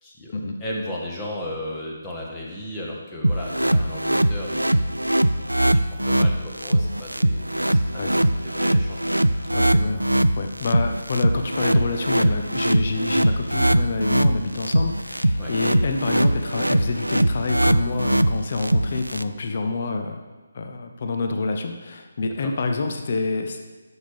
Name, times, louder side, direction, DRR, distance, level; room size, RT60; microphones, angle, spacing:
voice 1, 0.0-4.8 5.3-8.2 8.4-9.0 9.3-9.4 15.4-15.5 22.4-22.5, left 1 dB, 15° left, -3 dB, 1.6 m, -35 dB
sound 1, 3.2-19.2, right 1 dB, 85° right, 0.4 m, -21 dB
voice 2, 9.5-10.1 10.4-20.2 20.5-23.6, left 3 dB, 40° left, 5 dB, 0.7 m, -27 dB
12.5 x 6.3 x 3.6 m, 1.3 s
figure-of-eight pair, 145°, 0 cm